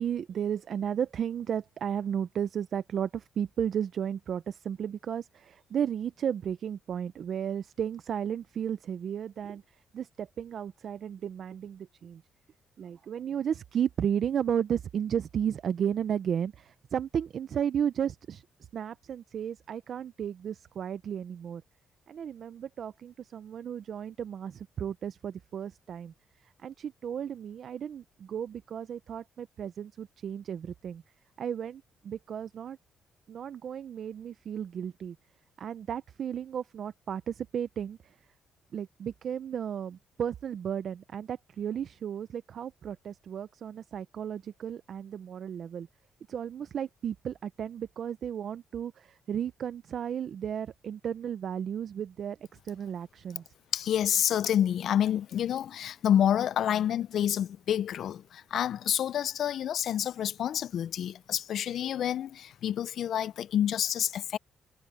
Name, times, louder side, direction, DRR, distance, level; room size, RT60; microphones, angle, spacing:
voice 1, 0.0-12.2 12.8-18.4 18.7-21.6 22.1-26.1 26.4-31.0 31.4-32.8 33.3-35.2 35.6-38.2 38.7-45.9 46.3-52.4 52.6-53.4, right 8 dB, 60° right, 0.6 m, -34 dB
voice 2, 53.7-64.4, left 10 dB, 70° left, 0.4 m, -28 dB
cardioid pair, 90°, 0 cm